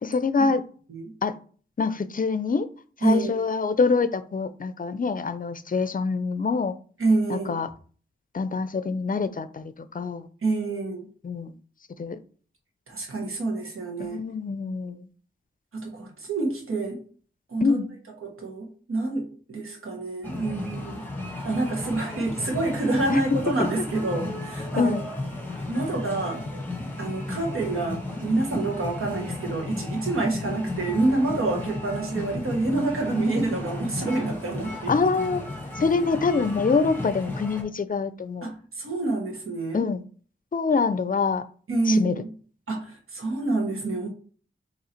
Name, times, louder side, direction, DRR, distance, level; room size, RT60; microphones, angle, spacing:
voice 1, 0.0-0.6 1.2-1.3 1.8-2.7 3.0-6.7 7.3-7.7 8.3-10.3 11.2-11.5 12.0-12.2 14.0-15.1 17.6-17.9 23.1-23.7 24.8-25.0 34.9-35.4 35.8-38.5 39.7-40.0 40.5-41.4 41.9-42.1, left 4 dB, 40° left, 13 dB, 0.5 m, -25 dB
voice 2, 3.0-3.3 7.0-7.6 10.4-11.1 12.9-14.2 15.7-17.0 17.5-17.8 18.2-21.0 21.4-24.9 25.7-26.4 27.0-34.9 38.4-39.8 41.7-42.3 42.7-44.1, right 2 dB, 85° right, 1 dB, 1.3 m, -27 dB
sound 1, 20.2-37.6, left 2 dB, 10° left, 1.4 m, -34 dB
3.8 x 3.0 x 4.3 m, 0.43 s
cardioid pair, 50°, 21 cm